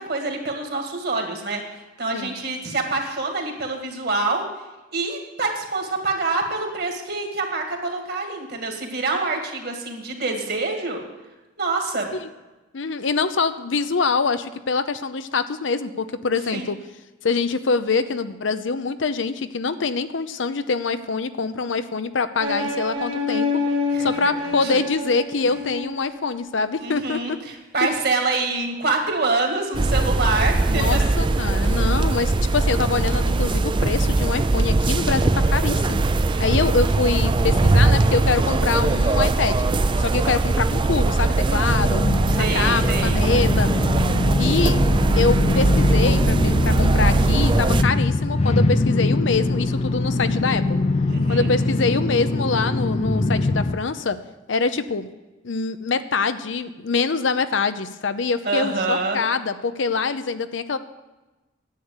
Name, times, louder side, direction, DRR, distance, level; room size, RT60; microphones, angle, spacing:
voice 1, 0.0-1.6 2.0-4.4 4.9-11.0 11.6-12.1 16.5-16.7 23.9-24.3 24.6-24.7 26.8-31.0 40.4-40.5 42.3-43.2 51.1-51.5 58.4-59.2, right 3 dB, 55° right, 3 dB, 2.1 m, -26 dB
voice 2, 12.7-16.8 17.2-23.5 24.0-27.4 27.8-27.9 30.7-36.0 36.4-42.0 42.4-43.7 44.4-44.8 45.1-50.8 51.3-54.2 54.5-55.1 55.4-60.8, left 4 dB, 75° left, 11 dB, 0.7 m, -24 dB
sound 1, 22.4-26.3, left 3 dB, 85° right, 2.2 m, -27 dB
sound 2, 29.7-47.8, right 2 dB, 25° right, 0.4 m, -20 dB
sound 3, 41.6-53.8, left 2 dB, 35° left, 0.5 m, -22 dB
10.0 x 8.1 x 8.0 m, 1.1 s
head